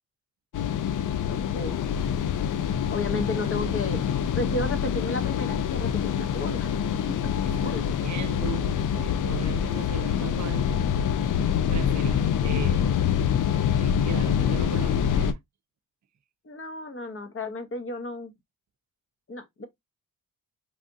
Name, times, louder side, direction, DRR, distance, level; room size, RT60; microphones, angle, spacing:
sound 1, 0.5-15.3, left 8 dB, 60° left, 0.5 m, -25 dB
voice 1, 1.0-1.8 2.9-4.1 4.4-6.7 7.1-7.2 7.6-8.0 16.4-18.3 19.3-19.7, left 2 dB, 35° left, 1.0 m, -33 dB
voice 2, 7.5-10.8 11.7-12.9 13.7-15.4, right 8 dB, 50° right, 0.6 m, -38 dB
3.3 x 2.4 x 2.6 m
cardioid pair, 65°, 36 cm